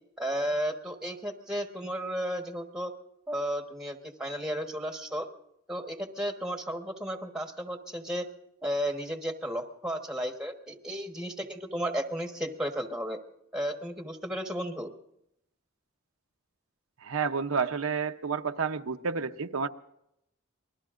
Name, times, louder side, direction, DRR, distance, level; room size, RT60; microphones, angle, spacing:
voice 1, 0.2-2.9 3.3-5.3 5.7-8.2 8.6-13.2 13.5-14.9, equal, 5° right, 5 dB, 1.2 m, -33 dB
voice 2, 17.0-19.7, right 5 dB, 75° right, 7 dB, 0.7 m, -30 dB
27.5 x 20.5 x 2.5 m, 0.80 s
head